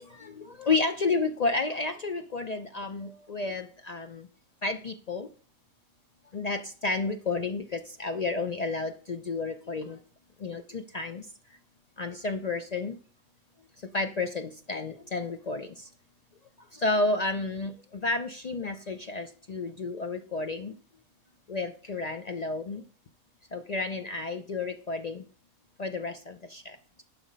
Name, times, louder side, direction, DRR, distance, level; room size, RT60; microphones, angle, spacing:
voice 1, 0.0-4.3 4.6-5.3 6.3-10.0 10.4-11.3 12.0-13.0 13.9-15.9 16.7-20.8 21.5-22.8 23.5-25.2 25.8-26.8, left 3 dB, 70° left, 7 dB, 0.3 m, -31 dB
11.0 x 5.0 x 5.2 m, 0.43 s
omnidirectional pair, 1.5 m